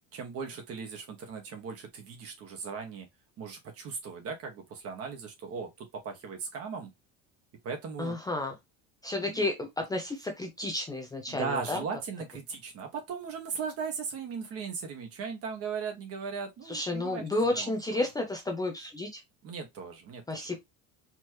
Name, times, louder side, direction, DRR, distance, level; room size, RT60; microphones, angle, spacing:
voice 1, 0.1-3.1 3.4-6.9 7.6-8.1 9.3-9.4 11.3-17.7 19.4-20.6, right 5 dB, 45° right, 1.6 m, -38 dB
voice 2, 8.0-8.6 9.0-11.8 16.6-19.2 20.3-20.6, left 2 dB, 10° left, 0.6 m, -31 dB
4.5 x 3.1 x 3.0 m
cardioid pair, 150°, 34 cm